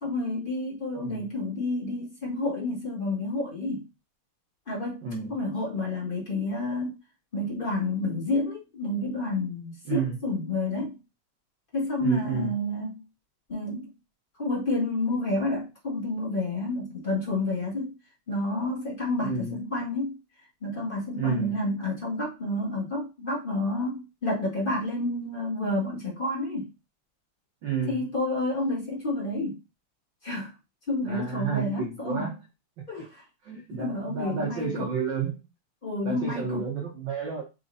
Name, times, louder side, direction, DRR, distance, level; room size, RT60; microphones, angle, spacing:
voice 1, 0.0-3.8 4.7-5.0 5.3-6.9 7.3-11.0 11.7-13.0 13.5-13.9 14.4-17.9 18.3-20.2 20.6-26.7 27.9-29.6 30.2-30.5 30.9-32.3 32.9-33.2 33.8-34.9 35.8-36.6, left 2 dB, 25° left, 1.3 m, -29 dB
voice 2, 5.0-5.4 9.8-10.2 12.0-12.6 19.2-19.6 21.1-21.6 27.6-28.1 31.0-32.4 33.4-35.3 36.0-37.4, right 5 dB, 80° right, 1.0 m, -31 dB
4.4 x 4.2 x 2.6 m
omnidirectional pair, 3.4 m